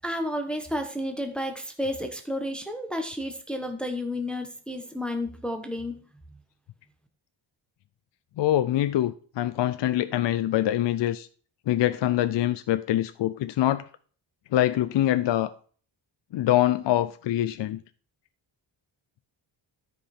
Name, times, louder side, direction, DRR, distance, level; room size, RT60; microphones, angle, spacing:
voice 1, 0.0-6.0, left 1 dB, ahead, 1.0 m, -31 dB
voice 2, 8.4-11.3 11.7-13.8 14.5-15.5 16.3-17.8, left 13 dB, 65° left, 0.5 m, -24 dB
13.0 x 5.3 x 4.3 m
wide cardioid pair, 150°, 47 cm